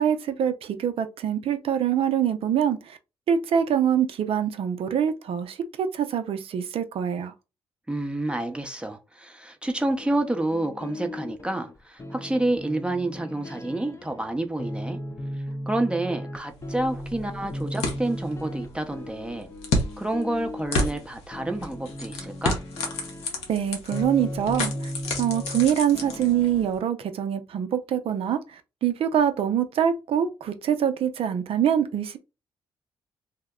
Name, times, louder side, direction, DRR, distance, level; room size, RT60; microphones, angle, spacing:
voice 1, 0.0-3.0 3.3-7.3 23.5-24.9 25.2-32.2, right 9 dB, 60° right, 0.5 m, -25 dB
voice 2, 7.9-15.0 15.7-19.5 20.0-22.6, right 1 dB, 10° right, 0.7 m, -29 dB
sound 1, 10.0-25.7 25.9-26.7, equal, 25° left, 0.7 m, -36 dB
sound 2, 16.5-26.8, left 2 dB, 80° left, 0.8 m, -32 dB
2.8 x 2.1 x 3.6 m
supercardioid pair, 50°, 11 cm